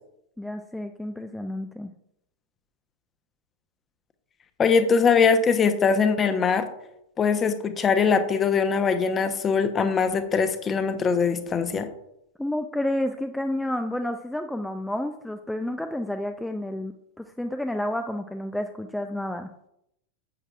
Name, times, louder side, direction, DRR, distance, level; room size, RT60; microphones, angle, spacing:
voice 1, 0.4-1.9 12.4-19.5, left 1 dB, 5° left, 7 dB, 0.5 m, -30 dB
voice 2, 4.6-6.7 7.2-11.9, left 5 dB, 20° left, 9 dB, 1.0 m, -22 dB
11.0 x 8.0 x 2.4 m, 0.79 s
figure-of-eight pair, 90°, 0 cm